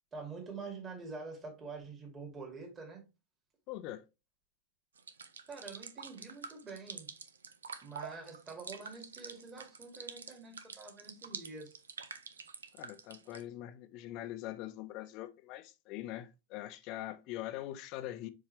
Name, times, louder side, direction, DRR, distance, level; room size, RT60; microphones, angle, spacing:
voice 1, 0.1-3.0 5.5-7.1 7.8-11.8, right 4 dB, 20° right, 2.4 m, -46 dB
voice 2, 3.7-4.0 12.7-18.3, left 14 dB, 40° left, 0.7 m, -43 dB
sound 1, 5.0-13.4, right 5 dB, 70° right, 0.7 m, -47 dB
7.2 x 4.8 x 3.3 m
figure-of-eight pair, 90°, 0 cm